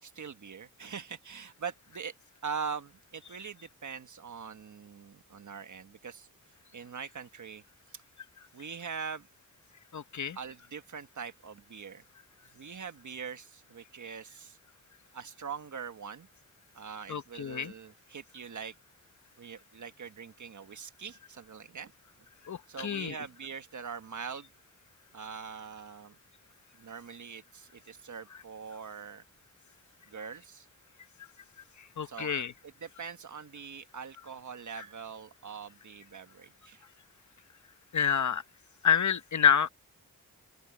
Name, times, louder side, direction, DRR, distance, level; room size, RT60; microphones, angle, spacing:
voice 1, 0.0-2.1 2.4-6.3 6.7-7.6 7.9-8.0 8.5-9.3 10.3-12.0 12.5-14.6 15.1-16.3 16.7-18.7 19.4-21.9 22.7-24.5 25.1-26.2 26.8-29.2 30.1-30.7 32.0-36.8, right 6 dB, 55° right, 1.4 m, -42 dB
voice 2, 9.9-10.4 17.1-17.7 22.5-23.1 32.0-32.5 37.9-38.4 38.8-39.7, left 7 dB, 50° left, 0.9 m, -27 dB
open air
wide cardioid pair, 160°, 36 cm